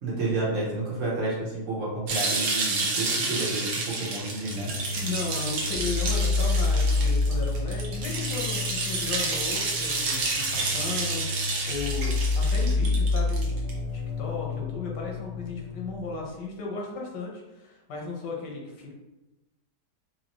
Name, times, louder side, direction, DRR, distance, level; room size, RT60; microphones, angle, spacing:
voice 1, 0.0-4.7, right 2 dB, 50° right, -5 dB, 1.4 m, -30 dB
sound 1, 2.1-13.7, right 3 dB, 75° right, 1.4 m, -30 dB
sound 2, 4.2-16.2, left 3 dB, 20° left, 0.7 m, -29 dB
voice 2, 5.0-13.5 13.9-18.9, left 3 dB, 85° left, -1 dB, 1.5 m, -35 dB
4.0 x 2.7 x 3.0 m, 1.0 s
omnidirectional pair, 1.8 m